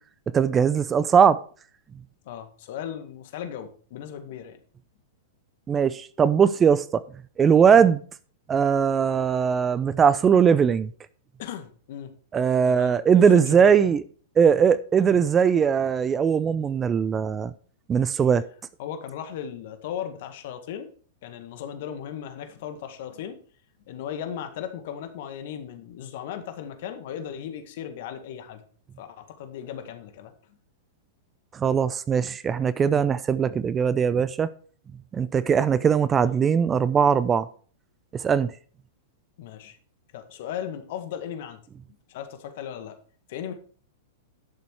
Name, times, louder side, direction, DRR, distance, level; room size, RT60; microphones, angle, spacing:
voice 1, 0.3-1.4 5.7-7.0 7.4-8.0 8.5-10.9 12.3-14.0 14.4-17.5 17.9-18.4 31.5-34.5 35.1-37.5 38.2-38.5, right 7 dB, 20° right, 0.6 m, -20 dB
voice 2, 2.3-4.6 11.4-12.1 12.6-12.9 13.3-13.7 18.8-20.9 21.2-23.4 23.9-28.6 29.0-30.3 39.4-39.8 40.1-41.6 42.1-43.0 43.3-43.5, left 9 dB, 60° left, 2.0 m, -36 dB
11.5 x 6.9 x 4.8 m
hypercardioid pair, 110°, 0 cm